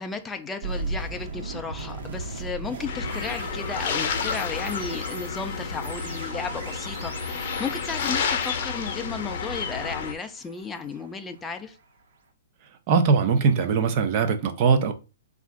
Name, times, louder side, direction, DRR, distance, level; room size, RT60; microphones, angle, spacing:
voice 1, 0.0-11.8, left 5 dB, 10° left, 0.4 m, -34 dB
sound 1, 0.6-11.6, right 3 dB, 60° right, 1.1 m, -38 dB
sound 2, 2.9-10.1, left 6 dB, 45° left, 0.7 m, -30 dB
voice 2, 12.9-14.9, right 5 dB, 35° right, 0.6 m, -21 dB
4.2 x 2.5 x 3.6 m
hypercardioid pair, 160°, 0 cm